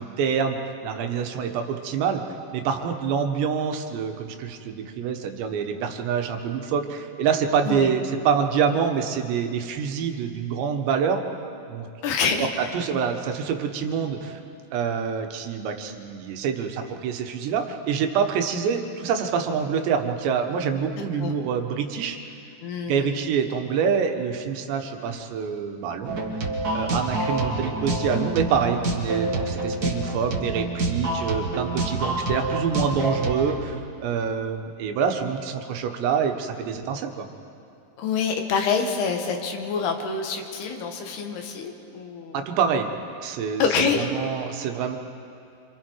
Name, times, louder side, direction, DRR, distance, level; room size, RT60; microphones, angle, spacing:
voice 1, 0.0-2.2 2.5-11.2 11.7-11.9 12.4-12.5 12.7-14.4 14.7-22.2 22.9-26.2 26.7-37.3 42.3-42.9 43.2-43.6 44.0-45.0, right 6 dB, 90° right, 5 dB, 3.6 m, -26 dB
voice 2, 12.0-12.7 21.0-21.3 22.6-23.2 38.0-42.5 43.6-44.1, left 5 dB, 70° left, 3 dB, 3.5 m, -26 dB
sound 1, 26.1-33.6, right 2 dB, 60° right, 0.9 m, -27 dB
27.5 x 27.0 x 4.7 m, 2.6 s
omnidirectional pair, 4.9 m